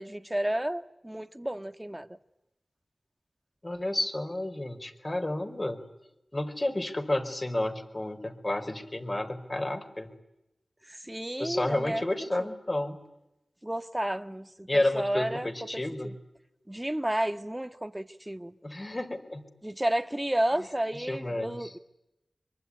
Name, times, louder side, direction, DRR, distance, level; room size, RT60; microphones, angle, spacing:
voice 1, 0.0-2.1 10.9-12.0 12.4-12.5 13.6-16.1 16.7-18.5 19.6-21.8, right 1 dB, 15° right, 1.6 m, -32 dB
voice 2, 3.6-5.8 6.3-10.1 11.4-13.0 14.7-16.1 18.6-19.4 20.9-21.7, left 1 dB, 35° left, 4.6 m, -31 dB
24.5 x 24.0 x 9.7 m
cardioid pair, 45°, 0 cm